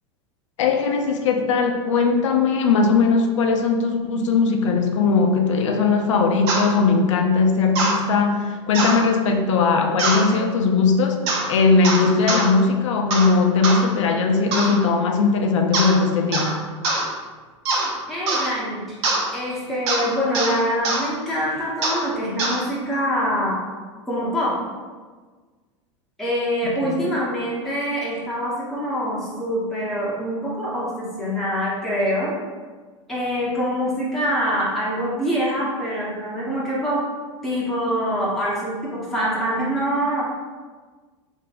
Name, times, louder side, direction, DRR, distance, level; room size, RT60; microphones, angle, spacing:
voice 1, 0.6-11.2 11.5-16.6 26.6-27.1, left 4 dB, 75° left, 4 dB, 0.4 m, -19 dB
sound 1, 6.5-6.7 7.8-8.0 8.7-9.0 10.0-10.3 11.3-11.5 11.8-12.5 13.1-13.3 13.6-13.8 14.5-14.8 15.7-16.0 16.3-16.5 16.8-17.1 17.7-17.9 18.3-18.5 19.0-19.2 19.9-20.0 20.3-20.5 20.8-21.0 21.8-22.0 22.4-22.6, right 2 dB, 60° right, 0.6 m, -22 dB
voice 2, 18.1-19.0 19.3-23.6 24.1-24.6 26.2-32.3 33.1-37.1 37.4-40.2, equal, ahead, -8 dB, 0.9 m, -24 dB
3.0 x 2.6 x 2.5 m, 1.4 s
hypercardioid pair, 90°, 16 cm